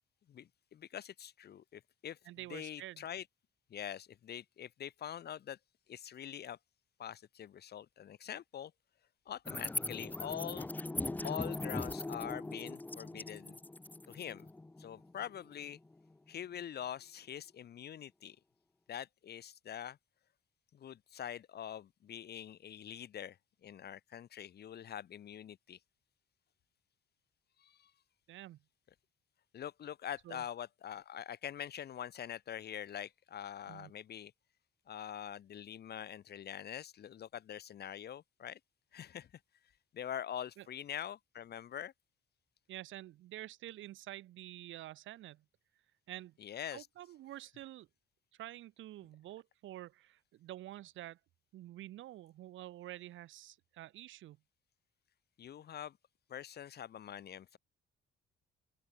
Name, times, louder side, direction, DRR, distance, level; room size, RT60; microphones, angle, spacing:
voice 1, 0.3-2.2 2.5-3.2 3.7-5.6 5.9-6.6 7.0-8.7 9.3-10.7 11.2-13.6 14.1-14.5 14.8-15.8 16.3-18.4 18.9-20.0 20.7-25.8 27.6-27.9 29.5-34.3 34.9-38.6 38.9-39.3 39.9-41.9 46.4-46.9 55.4-56.0 56.3-57.6, left 10 dB, 55° left, 0.9 m, -44 dB
voice 2, 2.2-3.1 28.3-28.6 30.2-30.5 33.7-33.9 40.6-40.7 42.7-45.4 46.1-47.9 48.4-51.2 51.5-54.4, right 14 dB, 75° right, 0.9 m, -48 dB
sound 1, 9.4-16.0, left 2 dB, 10° left, 0.4 m, -40 dB
open air
cardioid pair, 90°, 20 cm